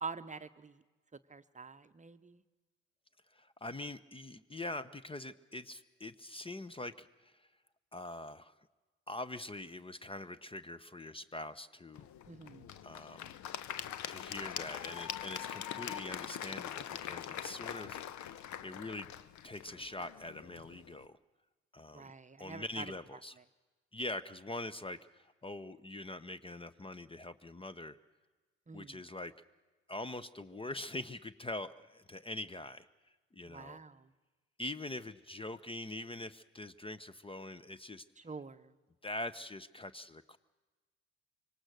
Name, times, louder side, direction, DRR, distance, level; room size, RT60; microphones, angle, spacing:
voice 1, 0.0-0.8 1.1-2.4 12.3-12.7 21.9-22.9 28.7-29.1 33.4-34.1 38.2-38.7, right 4 dB, 20° right, 11 dB, 1.0 m, -46 dB
voice 2, 3.3-7.5 7.9-8.5 9.1-12.1 12.8-13.4 14.1-19.1 19.4-21.2 21.7-22.1 22.4-23.3 23.9-28.0 28.7-29.3 29.9-32.9 33.3-33.8 34.6-38.0 39.0-40.4, left 2 dB, 15° left, 16 dB, 0.9 m, -43 dB
Applause / Crowd, 11.9-21.0, left 10 dB, 55° left, 1.0 m, -43 dB
25.5 x 24.0 x 6.5 m, 1.3 s
figure-of-eight pair, 50°, 35 cm